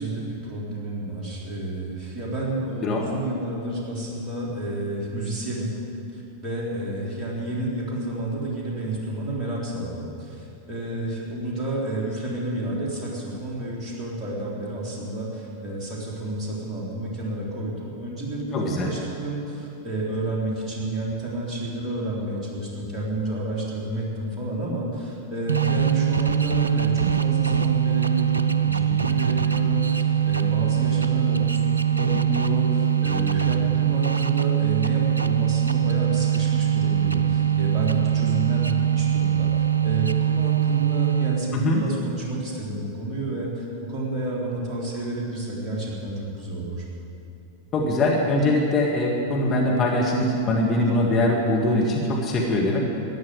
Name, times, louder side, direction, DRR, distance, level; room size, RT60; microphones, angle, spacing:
voice 1, 0.0-5.7 6.1-46.8, right 1 dB, 25° right, -4 dB, 4.1 m, -30 dB
voice 2, 18.5-18.9 41.5-41.8 47.7-52.8, left 1 dB, 25° left, -2 dB, 1.9 m, -22 dB
sound 1, 25.5-41.6, right 9 dB, 75° right, 0.4 m, -22 dB
14.0 x 10.0 x 8.2 m, 2.8 s
figure-of-eight pair, 90°, 0 cm